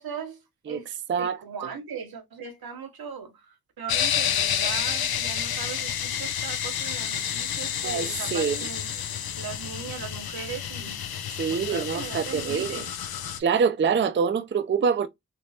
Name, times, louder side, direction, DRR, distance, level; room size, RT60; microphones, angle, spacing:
voice 1, 0.0-0.9 1.2-9.0 9.3-11.0 11.5-12.9, right 6 dB, 85° right, 0.8 m, -38 dB
sound 1, 3.9-13.4, left 9 dB, 80° left, 0.5 m, -30 dB
voice 2, 7.8-8.7 11.4-12.8 13.4-15.1, right 6 dB, 35° right, 0.4 m, -25 dB
3.4 x 2.9 x 2.7 m
cardioid pair, 50°, 36 cm